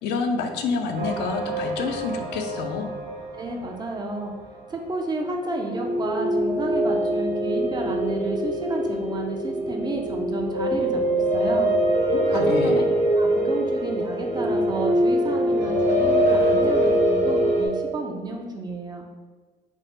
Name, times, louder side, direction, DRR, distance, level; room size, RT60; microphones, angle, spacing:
voice 1, 0.0-2.9 12.1-12.8, left 4 dB, 75° left, 4 dB, 0.4 m, -28 dB
sound 1, 0.9-4.4 5.6-17.7, equal, 75° right, 1.1 m, -23 dB
voice 2, 3.3-4.3 4.7-11.7 12.3-12.8 13.2-19.1, right 2 dB, 25° right, 2 dB, 0.4 m, -31 dB
3.3 x 2.0 x 2.9 m, 1.4 s
cardioid pair, 110°, 17 cm